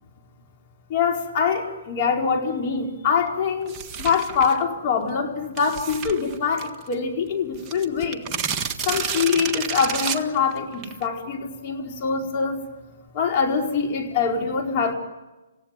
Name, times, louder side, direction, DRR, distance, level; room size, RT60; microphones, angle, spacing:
voice 1, 0.9-3.7 4.0-8.2 8.9-12.6 13.1-14.9, left 6 dB, 35° left, 1 dB, 4.8 m, -24 dB
sound 1, 3.7-4.6 5.6-6.9 7.3-7.4 7.5-11.0, right 6 dB, 20° right, 1.6 m, -30 dB
29.0 x 16.5 x 9.1 m, 1.1 s
hypercardioid pair, 150°, 0 cm